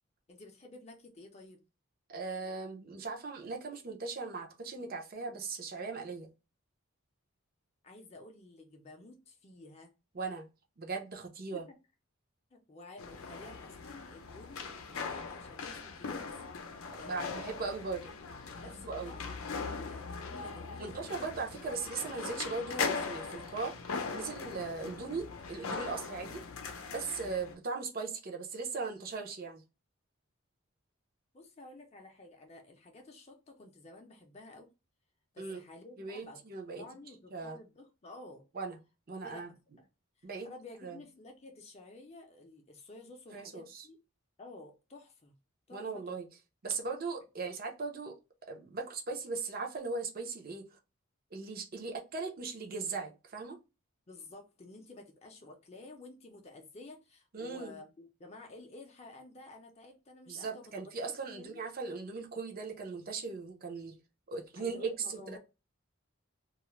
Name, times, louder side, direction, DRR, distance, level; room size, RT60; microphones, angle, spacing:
voice 1, 0.3-1.6 7.8-9.9 11.5-11.6 12.5-17.6 18.6-21.3 31.3-34.7 35.3-36.4 36.8-38.4 39.2-39.5 39.8-39.9 40.2-44.0 44.4-45.3 45.7-46.2 54.1-60.9 61.2-61.6 64.5-65.4, left 2 dB, 30° left, 0.5 m, -52 dB
voice 2, 2.1-6.3 10.1-10.5 10.8-11.6 17.0-18.1 18.6-19.1 20.8-23.7 24.1-26.4 26.9-29.6 35.4-35.6 36.0-36.8 37.3-37.6 38.5-38.8 39.1-39.5 40.2-40.5 40.8-41.0 43.3-43.9 45.7-46.3 46.6-48.2 48.5-50.6 51.3-53.6 57.3-57.8 60.3-64.0 64.3-65.4, right 4 dB, 45° right, 0.5 m, -38 dB
sound 1, 13.0-27.5, left 4 dB, 80° left, 0.5 m, -40 dB
2.3 x 2.0 x 2.9 m
head